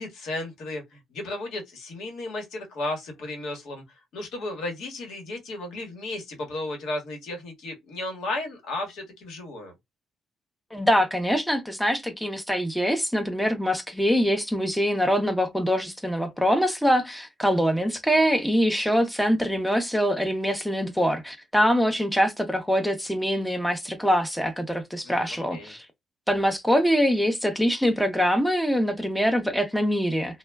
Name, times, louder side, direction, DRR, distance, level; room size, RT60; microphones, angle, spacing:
voice 1, 0.0-3.8 4.1-9.7 25.0-25.7, left 2 dB, 80° left, 1.1 m, -34 dB
voice 2, 10.7-25.9 26.3-30.4, equal, ahead, 0.5 m, -24 dB
2.2 x 2.1 x 3.3 m
cardioid pair, 90°, 0 cm